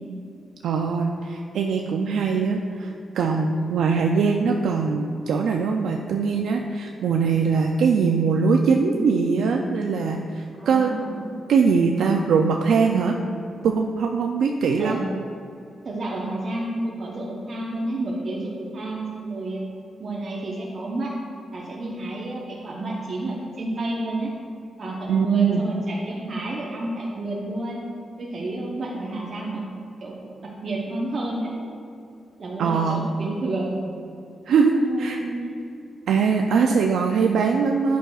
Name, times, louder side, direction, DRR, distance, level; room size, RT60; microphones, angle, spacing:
voice 1, 0.6-10.9 11.5-13.2 13.6-15.0 25.1-25.6 32.6-33.0 34.5-35.2 36.1-38.0, right 5 dB, 90° right, 2 dB, 0.4 m, -22 dB
voice 2, 8.9-9.4 10.6-11.3 14.8-15.0 15.8-19.6 20.0-21.1 21.5-24.3 24.8-27.8 28.2-29.6 30.0-31.5 32.4-33.7 34.7-35.6 36.5-36.8 37.4-37.6, right 2 dB, 50° right, -4 dB, 0.9 m, -30 dB
9.1 x 6.1 x 2.4 m, 2.6 s
cardioid pair, 100°, 0 cm